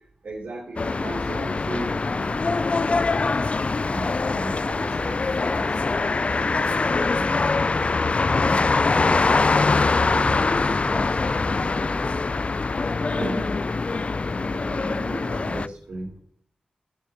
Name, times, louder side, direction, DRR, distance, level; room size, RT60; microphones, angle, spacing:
voice 1, 0.2-2.7 2.9-3.4 3.8-5.8 6.4-7.3 8.4-8.7 9.9-11.2 11.6-11.8 12.5-12.7 13.1-13.6 14.3-16.2, right 2 dB, 80° right, -6 dB, 3.0 m, -37 dB
sound 1, 0.8-15.7, left 3 dB, 45° left, 0.3 m, -23 dB
sound 2, 6.3-12.0, left 2 dB, 60° left, 1.9 m, -39 dB
17.0 x 8.3 x 2.9 m, 0.62 s
cardioid pair, 45°, 3 cm